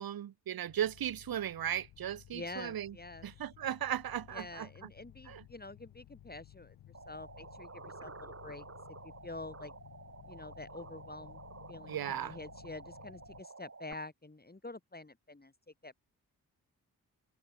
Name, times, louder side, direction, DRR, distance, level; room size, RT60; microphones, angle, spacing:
voice 1, 0.0-3.0 3.2-4.9 5.3-5.4 11.9-12.4, right 10 dB, 70° right, 1.3 m, -37 dB
sound 1, 0.7-13.4, left 13 dB, 85° left, 4.4 m, -57 dB
voice 2, 2.3-3.3 4.3-6.8 7.1-8.6 9.0-9.7 10.3-11.4 11.7-15.5 15.8-16.0, left 2 dB, 25° left, 5.0 m, -47 dB
sound 2, 6.9-13.9, right 3 dB, 40° right, 7.4 m, -51 dB
supercardioid pair, 40°, 37 cm